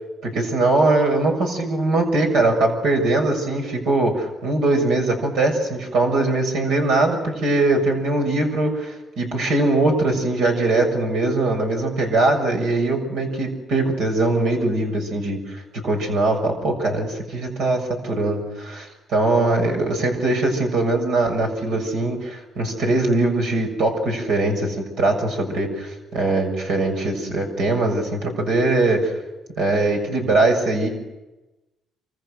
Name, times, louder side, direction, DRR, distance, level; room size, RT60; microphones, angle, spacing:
voice 1, 0.2-15.6 15.8-29.1 29.6-30.9, right 2 dB, 85° right, 3 dB, 6.9 m, -21 dB
28.0 x 26.0 x 6.7 m, 1.1 s
cardioid pair, 90°, 0 cm